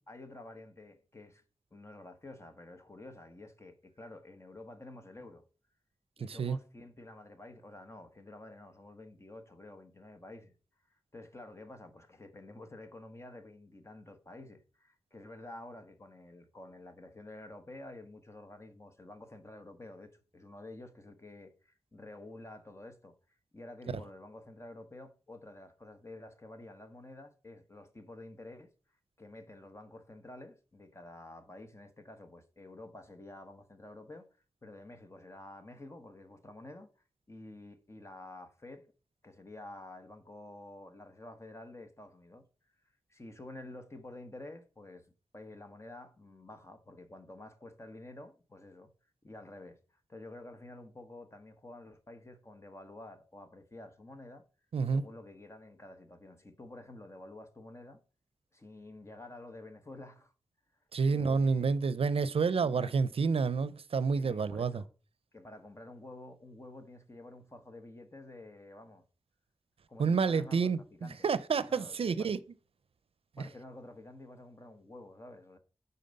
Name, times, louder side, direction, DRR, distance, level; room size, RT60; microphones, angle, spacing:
voice 1, 0.1-1.4 1.7-5.4 6.2-10.5 11.1-23.2 23.5-28.7 29.2-34.3 34.6-36.9 37.3-38.9 39.2-42.4 43.1-45.1 45.3-48.9 49.2-49.8 50.1-54.4 54.9-58.0 58.5-60.3 61.1-61.8 62.6-62.9 64.2-64.9 65.3-69.0 69.9-71.3 71.7-72.3 73.4-75.6, left 2 dB, 30° left, 1.2 m, -50 dB
voice 2, 6.2-6.6 54.7-55.1 60.9-64.8 70.0-72.4 73.4-73.5, right 5 dB, 80° right, 0.5 m, -29 dB
9.2 x 4.0 x 5.3 m
wide cardioid pair, 85°, 10 cm